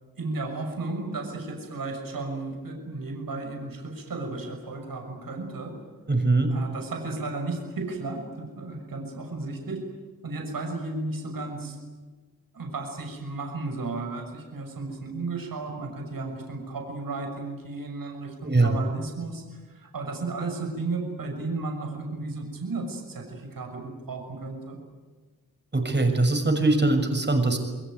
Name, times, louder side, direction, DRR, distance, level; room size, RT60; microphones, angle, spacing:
voice 1, 0.1-5.7 6.5-9.8 10.2-11.8 12.5-24.8, right 3 dB, 70° right, 3 dB, 6.6 m, -34 dB
voice 2, 6.1-6.5 18.4-18.7 25.7-27.6, right 2 dB, 30° right, 5 dB, 6.4 m, -22 dB
29.0 x 22.0 x 9.3 m, 1.3 s
wide cardioid pair, 85°, 35 cm